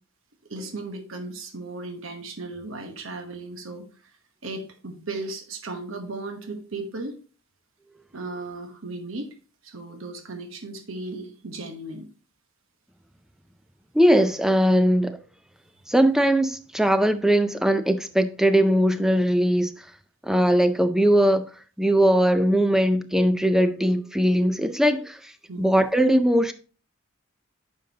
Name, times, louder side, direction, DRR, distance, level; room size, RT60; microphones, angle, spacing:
voice 1, 0.5-3.9 4.4-7.1 8.1-9.3 9.6-12.1 25.5-25.7, right 2 dB, 75° right, 1.0 m, -36 dB
voice 2, 13.9-15.2 15.9-19.7 20.2-21.5 21.8-25.3 25.6-26.5, equal, ahead, 0.4 m, -20 dB
9.2 x 5.2 x 2.8 m
head